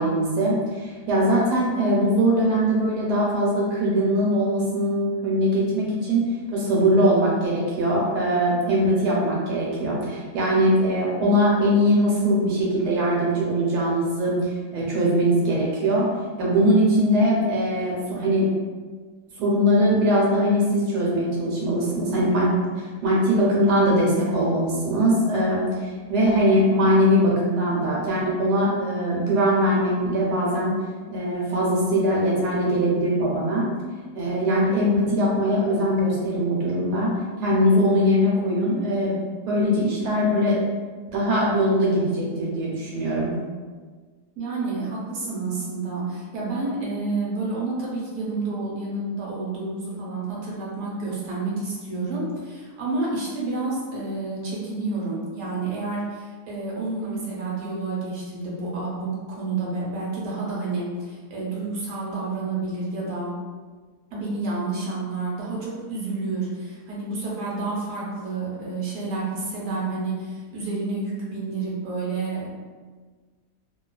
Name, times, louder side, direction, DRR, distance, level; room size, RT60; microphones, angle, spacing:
voice 1, 0.0-6.2 6.5-16.1 16.4-18.5 19.4-22.5 22.8-30.7 31.1-33.7 34.1-37.1 37.4-39.1 39.5-40.6 41.1-43.3, equal, 85° right, -4 dB, 1.2 m, -21 dB
voice 2, 44.4-63.3 64.1-72.5, right 3 dB, 60° right, -5 dB, 1.0 m, -29 dB
2.7 x 2.3 x 2.2 m, 1.4 s
omnidirectional pair, 1.7 m